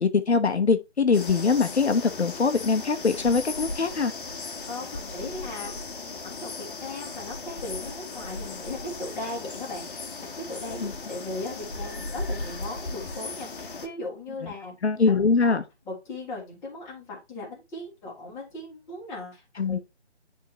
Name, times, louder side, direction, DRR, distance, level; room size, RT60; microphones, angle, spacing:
voice 1, 0.0-4.1 10.8-10.9 14.4-14.5 14.8-15.6 19.6-19.8, left 4 dB, 70° left, 1.0 m, -23 dB
sound 1, 1.1-13.9, left 3 dB, 50° left, 1.2 m, -37 dB
voice 2, 4.7-14.8 15.1-15.6 15.9-19.4 19.7-19.8, left 2 dB, 5° left, 1.6 m, -38 dB
10.0 x 3.7 x 2.9 m
figure-of-eight pair, 155°, 34 cm